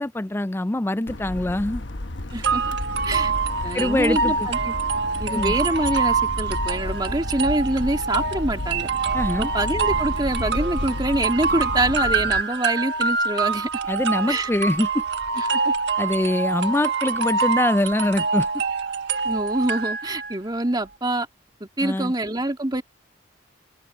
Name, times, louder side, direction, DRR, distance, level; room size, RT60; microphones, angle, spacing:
voice 1, 0.0-1.8 3.7-4.5 5.3-5.5 9.1-9.5 13.9-15.0 16.0-18.6 21.8-22.1, left 1 dB, 10° left, 0.4 m, -24 dB
sound 1, 1.1-12.4, left 1 dB, 65° left, 1.1 m, -32 dB
voice 2, 2.3-2.6 3.0-3.3 3.6-4.7 5.2-8.9 9.4-13.7 14.3-14.5 15.4-15.7 19.2-21.3 21.6-22.8, right 1 dB, 20° right, 2.4 m, -25 dB
sound 2, 2.4-20.4, right 4 dB, 60° right, 1.5 m, -25 dB
open air
head